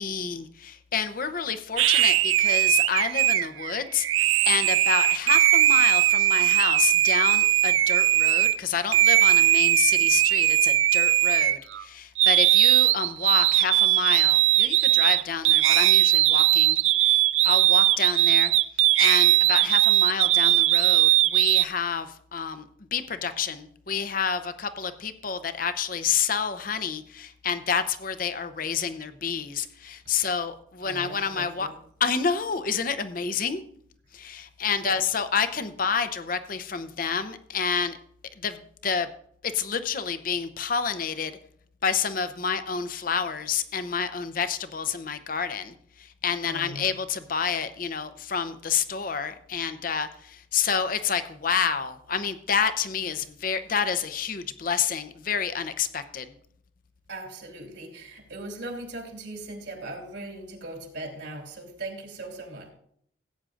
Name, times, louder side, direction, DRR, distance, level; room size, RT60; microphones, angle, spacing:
voice 1, 0.0-4.1 4.5-18.5 19.0-22.6 22.9-31.7 32.0-33.6 34.1-38.0 38.4-39.1 39.4-41.4 41.8-56.3, left 6 dB, 45° left, 11 dB, 0.7 m, -29 dB
sound 1, 1.8-8.6 8.9-11.8 12.2-21.6, right 14 dB, 85° right, 0.4 m, -20 dB
voice 2, 30.8-31.8 34.2-34.3 34.8-35.0 46.4-46.9 57.1-62.7, right 2 dB, 65° right, 2 dB, 2.7 m, -39 dB
16.5 x 8.9 x 2.5 m, 0.65 s
head